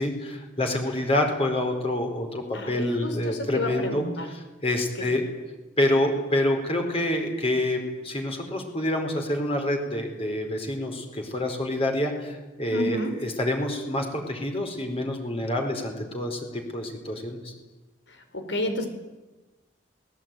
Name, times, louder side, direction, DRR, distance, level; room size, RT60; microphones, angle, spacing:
voice 1, 0.0-4.0 4.3-5.2 5.8-17.5, left 1 dB, 35° left, 3 dB, 4.7 m, -27 dB
voice 2, 2.5-4.3 5.0-5.1 12.7-13.1 18.3-18.9, left 1 dB, 80° left, 7 dB, 4.9 m, -30 dB
27.5 x 19.5 x 9.3 m, 1.1 s
head